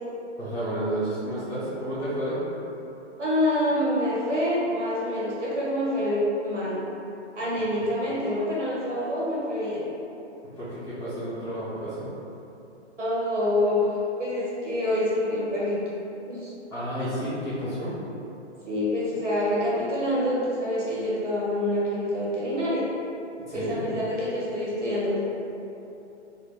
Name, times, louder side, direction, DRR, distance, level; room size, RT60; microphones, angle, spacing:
voice 1, 0.4-2.4 10.6-12.1 16.7-17.9 23.5-23.9, right 1 dB, 5° left, -17 dB, 0.4 m, -31 dB
voice 2, 3.2-6.8 7.3-9.8 13.0-13.8 14.2-15.8 16.3-16.5 18.6-22.8 23.5-25.2, left 1 dB, 90° right, -8 dB, 1.4 m, -26 dB
4.0 x 2.1 x 3.4 m, 2.9 s
figure-of-eight pair, 130°, 35 cm